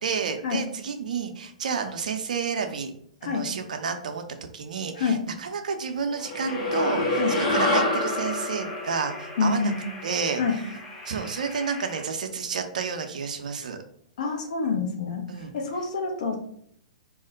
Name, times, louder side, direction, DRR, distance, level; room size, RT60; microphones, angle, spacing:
voice 1, 0.0-2.9 3.2-4.2 4.5-9.7 10.0-10.6 11.1-13.8 15.3-15.5, right 5 dB, 65° right, 6 dB, 0.5 m, -30 dB
sound 1, 6.2-10.8, left 2 dB, 30° left, 1.3 m, -27 dB
sound 2, 6.5-12.0, left 2 dB, 10° left, 0.8 m, -43 dB
voice 2, 9.4-9.8 10.4-10.6 14.2-15.2 15.5-16.4, left 5 dB, 60° left, 2 dB, 0.8 m, -26 dB
2.4 x 2.1 x 3.8 m, 0.67 s
figure-of-eight pair, 115°, 4 cm